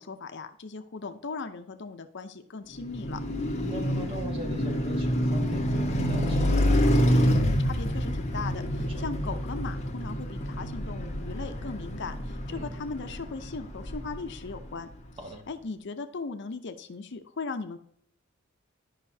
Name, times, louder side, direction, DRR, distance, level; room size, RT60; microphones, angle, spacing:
voice 1, 0.0-3.2 7.4-14.9 15.5-17.8, left 4 dB, 60° left, 8 dB, 0.6 m, -38 dB
Car passing by, 2.7-15.0, equal, 35° left, 1.4 m, -27 dB
voice 2, 3.7-6.8 8.8-9.1 12.5-12.7 15.2-15.4, right 1 dB, 25° right, 1 dB, 1.5 m, -40 dB
12.0 x 5.5 x 2.7 m, 0.65 s
head